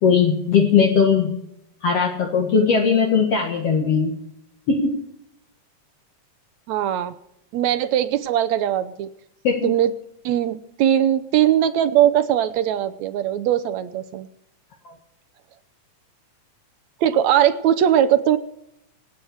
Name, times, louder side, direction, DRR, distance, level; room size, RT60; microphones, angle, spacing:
voice 1, 0.0-1.3 1.8-4.1 4.7-5.0 9.4-9.7 14.8-14.9, left 6 dB, 55° left, 1 dB, 2.5 m, -19 dB
voice 2, 6.7-7.1 7.5-9.1 9.6-9.9 10.3-14.3 17.0-18.4, right 10 dB, 75° right, 11 dB, 1.9 m, -20 dB
26.0 x 8.9 x 4.8 m, 0.79 s
omnidirectional pair, 3.6 m